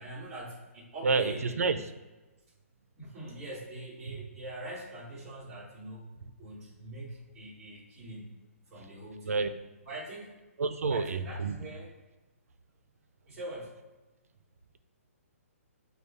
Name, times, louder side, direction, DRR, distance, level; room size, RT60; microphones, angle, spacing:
voice 1, 0.0-1.8 3.0-6.1 6.4-8.3 8.7-9.4 9.8-10.3 10.9-11.9 13.3-13.7, right 1 dB, 10° right, -7 dB, 0.8 m, -43 dB
voice 2, 1.0-1.8 4.1-4.2 9.3-9.5 10.6-11.6, right 4 dB, 80° right, 11 dB, 0.4 m, -29 dB
6.4 x 2.3 x 3.3 m, 1.1 s
hypercardioid pair, 180°, 8 cm